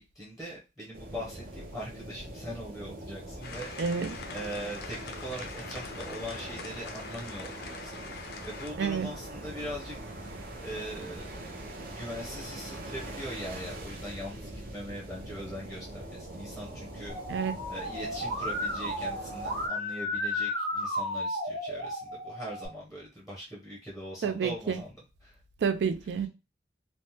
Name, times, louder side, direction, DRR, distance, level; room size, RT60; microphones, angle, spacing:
voice 1, 0.0-10.0 10.3-17.4 17.7-25.4, equal, ahead, 0.7 m, -41 dB
sound 1, 0.9-19.7, right 1 dB, 55° right, 0.7 m, -42 dB
sound 2, 3.4-8.7, left 5 dB, 60° left, 0.5 m, -43 dB
voice 2, 3.8-4.2 8.8-9.1 17.3-17.6 24.2-24.8 25.6-26.3, right 6 dB, 70° right, 0.3 m, -29 dB
Musical instrument, 17.1-22.7, left 1 dB, 90° right, 1.2 m, -33 dB
3.2 x 2.1 x 2.8 m
head